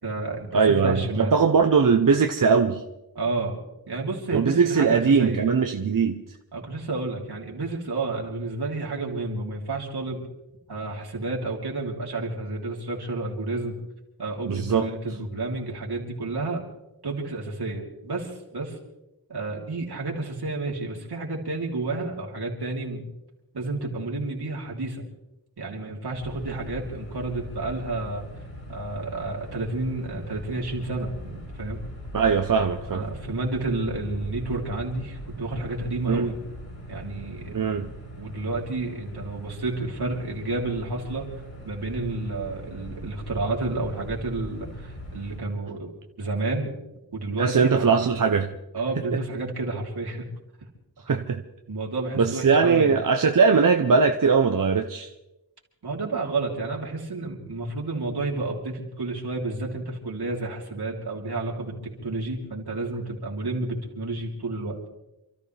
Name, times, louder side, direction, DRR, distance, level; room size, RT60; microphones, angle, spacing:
voice 1, 0.0-1.4 3.1-3.6 3.9-5.4 6.5-10.2 10.7-13.7 14.2-16.6 17.0-18.8 19.3-23.0 23.5-25.1 25.6-28.2 28.7-31.8 32.9-37.6 38.2-41.3 41.6-45.9 46.2-46.7 47.1-47.9 48.7-50.2 51.7-53.0 55.8-64.8, right 2 dB, 80° right, -2 dB, 3.3 m, -30 dB
voice 2, 0.5-2.8 4.3-6.2 14.5-14.9 32.1-33.0 36.1-36.3 37.5-37.9 47.4-48.5 49.1-49.2 51.1-51.4 52.2-55.1, right 5 dB, 55° right, 5 dB, 0.9 m, -20 dB
sound 1, 26.1-45.4, equal, 55° left, 7.9 m, -40 dB
28.0 x 13.5 x 3.4 m, 0.94 s
wide cardioid pair, 80°, 38 cm